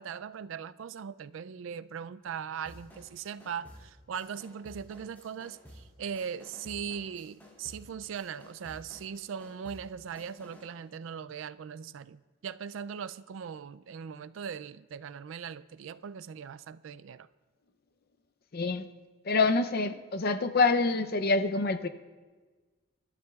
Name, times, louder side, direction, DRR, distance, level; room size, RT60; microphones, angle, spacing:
voice 1, 0.0-17.3, right 7 dB, 75° right, 0.4 m, -40 dB
sound 1, 2.6-10.8, equal, 10° left, 2.6 m, -53 dB
voice 2, 18.5-18.9 19.3-21.9, left 3 dB, 50° left, 0.6 m, -26 dB
26.0 x 12.5 x 2.4 m
head